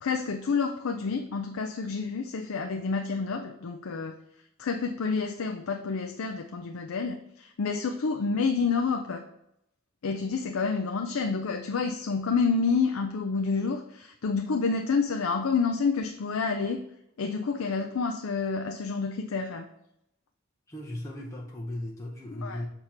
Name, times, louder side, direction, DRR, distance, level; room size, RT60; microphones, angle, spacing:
voice 1, 0.0-4.2 4.6-9.2 10.0-16.8 17.2-19.7 22.3-22.7, left 4 dB, 75° left, 5 dB, 0.5 m, -29 dB
voice 2, 20.7-22.7, left 1 dB, 15° left, -2 dB, 0.7 m, -37 dB
6.6 x 2.9 x 5.8 m, 0.81 s
head